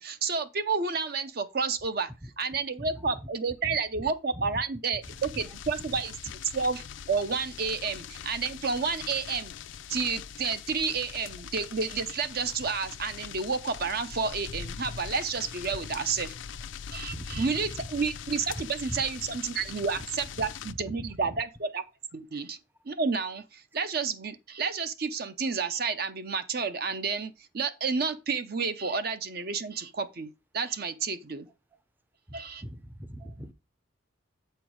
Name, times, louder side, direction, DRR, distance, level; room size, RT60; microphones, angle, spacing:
voice 1, 0.0-2.1 2.4-9.5 9.9-16.4 16.9-21.8 22.1-22.6 22.9-31.5 32.3-32.6, right 5 dB, 50° right, 0.7 m, -30 dB
voice 2, 2.2-3.1 3.6-3.8 4.3-4.6 5.3-5.4 17.1-17.5 17.8-17.9 18.5-18.6 18.9-19.0 20.4-20.5 20.9-21.4 22.3-22.4 32.3-33.5, equal, 10° right, 0.5 m, -41 dB
sound 1, 5.0-20.7, left 7 dB, 70° left, 0.4 m, -42 dB
7.8 x 4.5 x 4.7 m
head